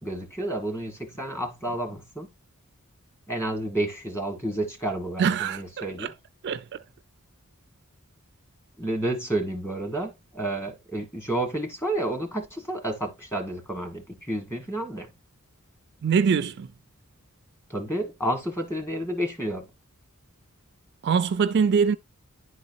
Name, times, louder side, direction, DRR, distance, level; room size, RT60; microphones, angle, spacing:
voice 1, 0.0-2.3 3.3-6.1 8.8-15.1 17.7-19.6, right 1 dB, 10° left, 1.4 m, -30 dB
voice 2, 5.2-5.6 6.0-6.1 6.4-6.8 16.0-16.7 21.0-22.0, right 6 dB, 50° right, 0.4 m, -23 dB
10.5 x 3.9 x 2.6 m
head